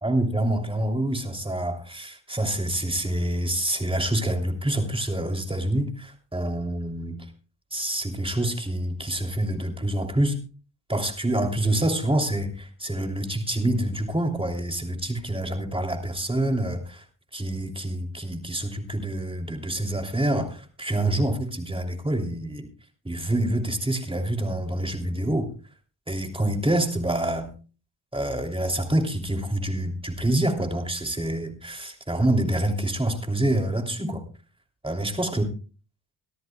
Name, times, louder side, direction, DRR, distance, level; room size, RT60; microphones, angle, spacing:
voice 1, 0.0-7.2 7.7-10.4 10.9-17.0 17.3-22.7 23.0-25.5 26.1-27.5 28.1-34.2 34.8-35.4, right 1 dB, 10° right, 4 dB, 3.2 m, -26 dB
24.0 x 13.0 x 2.3 m, 0.37 s
supercardioid pair, 55°, 45 cm